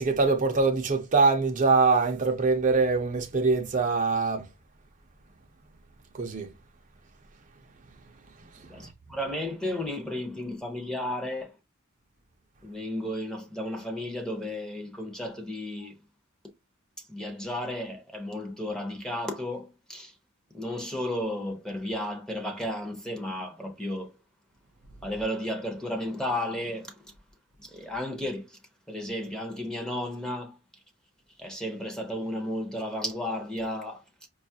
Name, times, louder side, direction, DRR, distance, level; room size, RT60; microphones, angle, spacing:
voice 1, 0.0-4.4 6.1-6.5, right 4 dB, 40° right, 0.6 m, -23 dB
voice 2, 8.6-11.5 12.6-16.0 17.1-20.1 20.5-24.1 25.0-27.0 27.6-28.6 28.9-30.6 31.4-34.3, left 1 dB, 5° left, 0.7 m, -33 dB
5.2 x 2.3 x 2.7 m
head